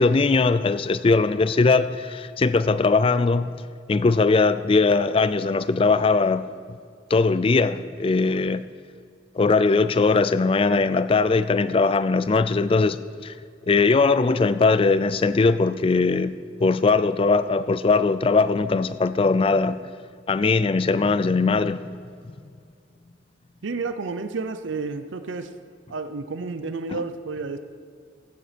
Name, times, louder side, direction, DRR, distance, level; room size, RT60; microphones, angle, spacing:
voice 1, 0.0-3.5 3.9-6.8 7.1-8.6 9.4-13.3 13.7-16.4 16.6-19.8 20.3-21.8, left 4 dB, 30° left, 0.3 m, -20 dB
voice 2, 23.6-25.5 25.9-27.6, right 4 dB, 90° right, 0.6 m, -31 dB
14.0 x 8.8 x 5.1 m
head